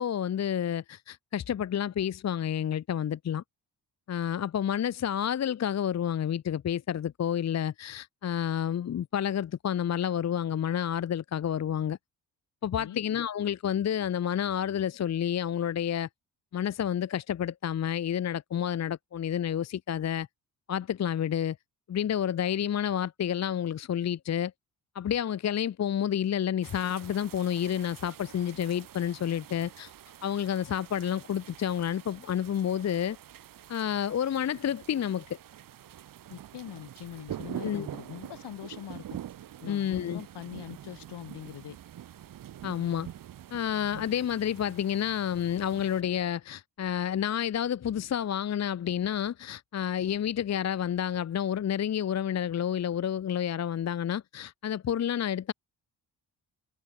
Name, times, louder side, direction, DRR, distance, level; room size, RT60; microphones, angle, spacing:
voice 1, 0.0-3.4 4.1-12.0 12.6-16.1 16.5-20.3 20.7-21.6 21.9-24.5 24.9-29.9 30.2-33.2 33.7-35.4 37.6-37.9 39.7-40.2 42.6-43.1 43.5-55.5, left 9 dB, 40° left, 0.6 m, -30 dB
sound 1, 26.6-46.0, right 11 dB, 55° right, 0.8 m, -46 dB
voice 2, 36.3-39.2 39.6-41.8, left 11 dB, 75° left, 4.2 m, -43 dB
supercardioid pair, 60°, 41 cm